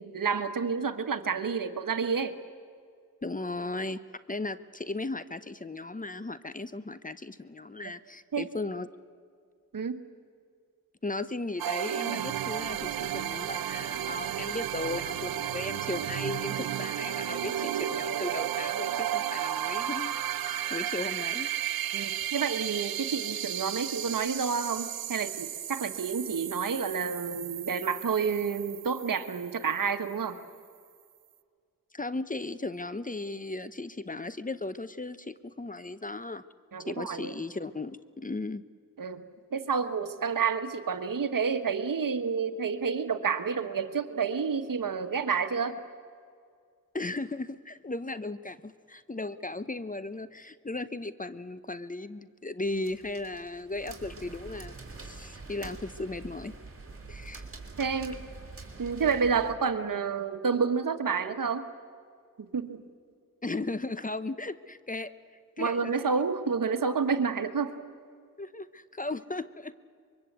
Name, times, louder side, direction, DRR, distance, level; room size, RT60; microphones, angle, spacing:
voice 1, 0.0-2.3 8.3-8.5 9.7-10.0 21.9-30.3 36.7-37.3 39.0-39.2 39.5-45.8 57.8-58.2 58.8-61.7 62.4-62.8 65.6-67.7, right 5 dB, 65° right, 9 dB, 1.5 m, -29 dB
voice 2, 3.2-4.0 4.3-8.9 11.0-20.2 20.4-21.5 31.9-36.4 36.8-38.6 46.9-56.5 57.1-57.4 63.4-65.1 65.6-66.1 68.4-69.7, left 2 dB, 25° left, 14 dB, 0.9 m, -36 dB
sound 1, 11.6-30.1, right 11 dB, 85° right, 0.7 m, -33 dB
sound 2, 52.6-59.5, right 3 dB, 40° right, 4.2 m, -45 dB
24.5 x 22.5 x 8.2 m, 2.1 s
cardioid pair, 50°, 35 cm